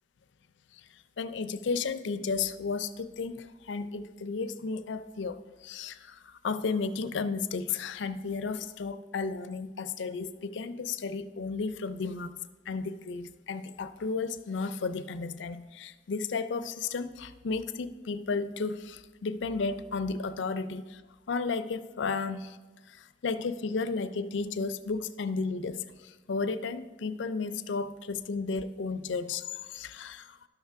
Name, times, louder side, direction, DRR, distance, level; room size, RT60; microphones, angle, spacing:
voice 1, 0.9-12.4 12.7-21.0 21.3-22.6 22.9-30.5, left 4 dB, 70° left, 12 dB, 0.4 m, -33 dB
11.5 x 6.5 x 3.5 m, 1.3 s
head